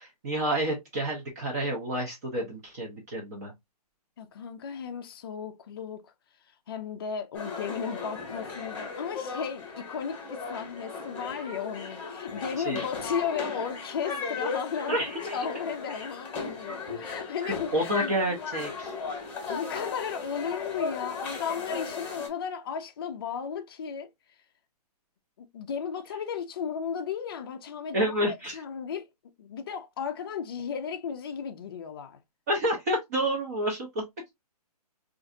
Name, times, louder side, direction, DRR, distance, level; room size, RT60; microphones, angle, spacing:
voice 1, 0.0-3.5 12.7-12.9 14.9-15.4 17.4-19.0 27.9-28.6 32.5-34.0, right 1 dB, 25° right, 0.6 m, -29 dB
voice 2, 4.2-6.1 6.7-15.0 15.3-17.7 18.0-18.1 19.5-24.1 25.4-29.1 29.4-32.2, left 7 dB, 35° left, 0.4 m, -35 dB
sound 1, 7.3-22.3, left 4 dB, 10° left, 1.0 m, -36 dB
3.9 x 2.5 x 2.5 m
hypercardioid pair, 170°, 21 cm